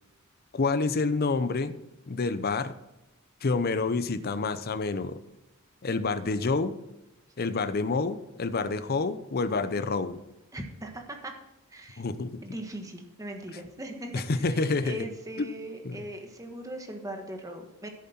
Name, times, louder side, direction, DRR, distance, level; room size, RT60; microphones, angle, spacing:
voice 1, 0.5-1.7 2.1-2.7 3.4-5.2 5.8-6.7 7.4-10.2 12.0-12.4 14.1-15.1 15.4-15.5 15.8-16.0, left 3 dB, 45° left, 12 dB, 0.6 m, -28 dB
voice 2, 10.5-11.3 11.7-12.0 12.4-17.9, right 1 dB, 15° right, 4 dB, 1.3 m, -40 dB
13.0 x 7.4 x 4.3 m, 0.95 s
head